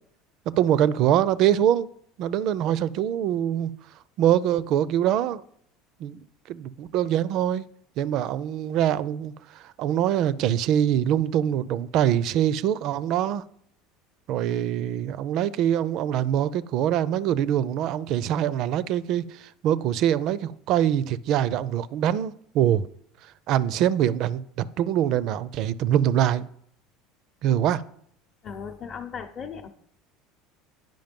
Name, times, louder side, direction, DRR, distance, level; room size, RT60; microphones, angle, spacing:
voice 1, 0.6-1.9 2.2-3.7 4.2-5.4 6.0-6.2 6.5-7.7 8.0-13.4 14.3-22.9 23.5-26.5 27.4-27.8, right 10 dB, 60° right, 0.4 m, -24 dB
voice 2, 28.4-29.7, left 6 dB, 45° left, 0.7 m, -37 dB
9.3 x 5.2 x 5.2 m
supercardioid pair, 95°, 0 cm